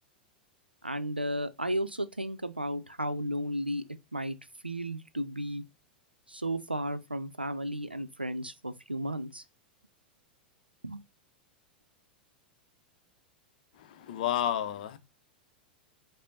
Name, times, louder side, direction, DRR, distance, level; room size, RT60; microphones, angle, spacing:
voice 1, 0.8-3.8 4.1-4.4 4.6-5.6 6.3-9.4 10.8-11.0, equal, 90° right, 0.5 m, -34 dB
voice 2, 13.7-15.0, left 11 dB, 55° left, 0.6 m, -31 dB
5.0 x 2.1 x 4.0 m
figure-of-eight pair, 90°, 5 cm